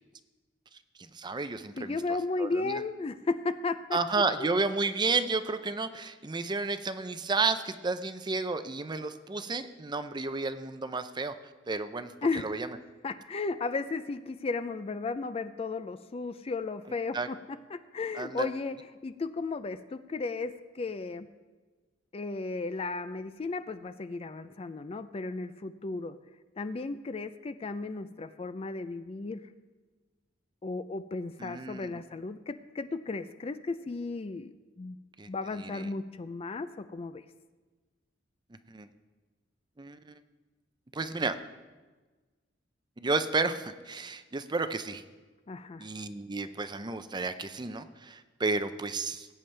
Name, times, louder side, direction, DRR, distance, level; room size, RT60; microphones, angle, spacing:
voice 1, 1.0-2.0 2.4-2.8 3.9-11.3 11.7-12.8 17.1-17.3 18.1-18.5 31.4-32.0 35.2-35.3 35.6-35.9 38.7-38.9 39.8-40.2 40.9-41.4 43.0-45.0 45.8-49.3, right 3 dB, 25° right, 10 dB, 0.5 m, -32 dB
voice 2, 1.8-4.0 4.4-4.5 12.2-12.5 13.0-17.4 17.7-21.3 22.1-26.2 26.6-29.4 30.6-35.0 35.3-37.2 45.5-45.9, left 3 dB, 30° left, 12 dB, 0.4 m, -34 dB
19.5 x 8.9 x 3.3 m, 1.3 s
head